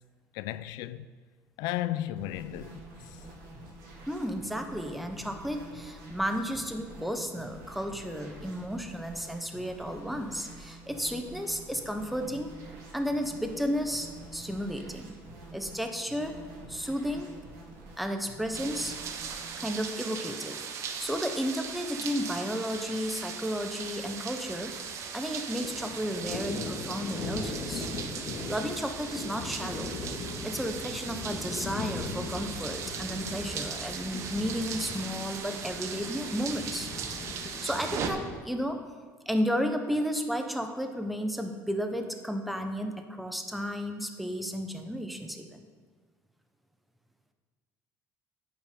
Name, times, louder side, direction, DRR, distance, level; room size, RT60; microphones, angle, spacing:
voice 1, 0.3-1.1 1.6-2.8 3.1-3.2, left 14 dB, 85° left, 0.4 m, -34 dB
sound 1, 2.2-19.6, right 2 dB, 75° right, 3.1 m, -47 dB
voice 2, 4.1-12.5 12.9-15.2 15.5-17.3 18.0-19.0 19.6-24.8 25.1-27.9 28.5-29.9 30.4-36.9 37.3-38.8 39.3-45.7, equal, ahead, 0.7 m, -33 dB
sound 2, 18.5-38.1, right 6 dB, 50° right, 1.0 m, -38 dB
Thunder, 22.7-22.9 23.2-23.3 23.6-25.1 25.4-38.3, left 3 dB, 50° left, 1.5 m, -39 dB
9.0 x 8.2 x 5.1 m
cardioid pair, 140°, 7 cm